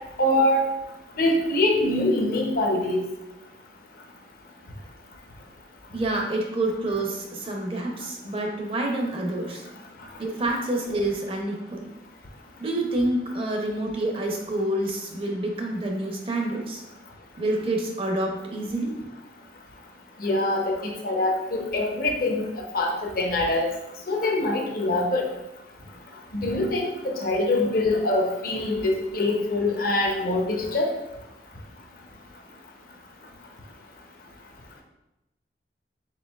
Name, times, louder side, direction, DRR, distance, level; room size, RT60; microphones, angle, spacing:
voice 1, 0.2-0.6 1.2-3.0 20.2-22.4 22.7-23.7 24.1-25.3 26.3-30.9, left 2 dB, 55° left, 1 dB, 0.6 m, -24 dB
voice 2, 5.9-9.6 10.2-11.9 12.6-16.8 17.4-18.9, right 1 dB, 30° right, 1 dB, 0.5 m, -28 dB
4.4 x 3.7 x 2.3 m, 0.93 s
head